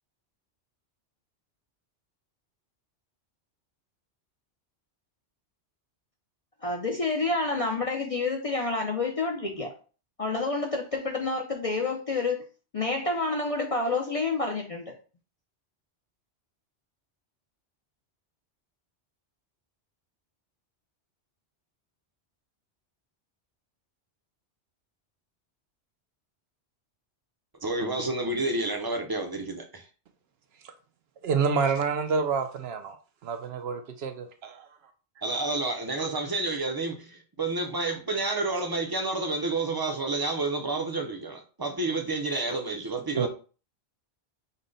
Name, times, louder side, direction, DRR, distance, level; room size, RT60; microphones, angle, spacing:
voice 1, 6.6-9.7 10.2-12.5 12.7-14.9, left 3 dB, 40° left, 0.5 m, -28 dB
voice 2, 27.6-29.8 35.2-43.3, right 2 dB, 25° right, 0.5 m, -30 dB
voice 3, 31.2-32.9 33.2-34.7 43.2-43.3, right 5 dB, 70° right, 0.8 m, -28 dB
5.4 x 2.1 x 3.9 m
omnidirectional pair, 1.2 m